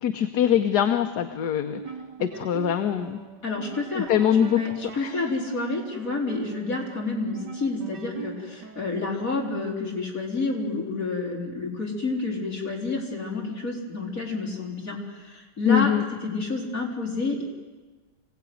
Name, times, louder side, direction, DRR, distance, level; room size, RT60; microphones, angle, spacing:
voice 1, 0.0-1.8 2.2-3.2 3.9-4.6 4.9-5.2 15.7-16.0, left 9 dB, 70° left, 7 dB, 1.5 m, -23 dB
sound 1, 1.6-9.1, right 6 dB, 80° right, 1.8 m, -40 dB
voice 2, 3.4-4.1 4.5-15.9 16.2-17.4, left 3 dB, 50° left, -1 dB, 4.4 m, -29 dB
26.0 x 17.0 x 9.4 m, 1.3 s
omnidirectional pair, 1.8 m